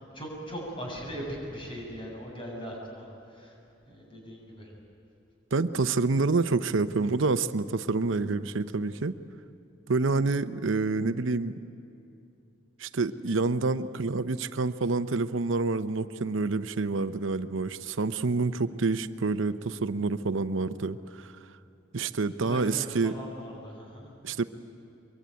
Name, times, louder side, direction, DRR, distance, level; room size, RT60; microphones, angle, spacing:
voice 1, 0.0-3.5 3.9-4.7 22.4-24.1, equal, 25° left, -1 dB, 7.2 m, -39 dB
voice 2, 5.5-9.1 9.9-11.5 12.8-21.3 21.9-23.1 24.2-24.4, right 3 dB, 90° right, 12 dB, 0.7 m, -27 dB
24.0 x 23.5 x 9.3 m, 2.7 s
head